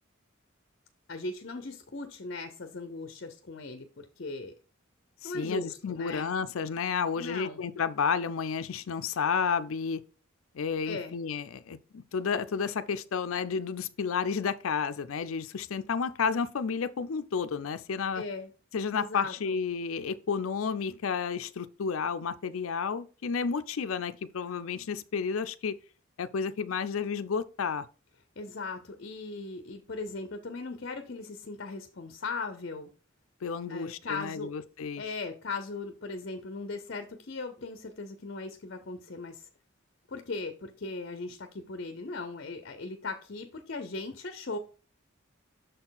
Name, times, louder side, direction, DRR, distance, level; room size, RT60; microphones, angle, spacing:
voice 1, 1.1-4.5 5.2-6.3 7.2-7.6 10.8-11.2 18.1-18.5 19.0-19.6 28.4-32.9 33.7-34.5 35.0-39.5 40.1-44.6, left 3 dB, 55° left, 0.7 m, -38 dB
voice 2, 5.2-10.0 10.5-18.2 18.7-25.8 26.2-27.8 33.4-35.0, left 6 dB, 90° left, 0.5 m, -31 dB
6.6 x 4.4 x 3.9 m
head